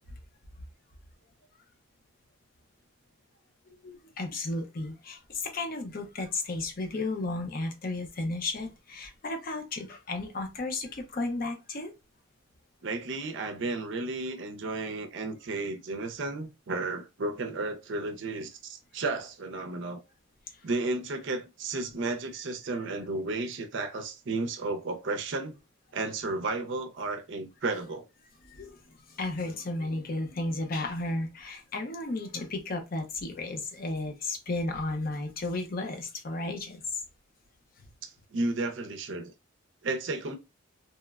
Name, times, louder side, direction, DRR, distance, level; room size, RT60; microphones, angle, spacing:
voice 1, 3.8-11.9 28.4-28.8 29.1-37.0, left 2 dB, 45° left, 0.5 m, -33 dB
voice 2, 12.8-20.0 20.6-25.6 25.9-28.1 38.0-39.3 39.8-40.4, right 3 dB, 60° right, 0.5 m, -33 dB
2.9 x 2.1 x 2.2 m
head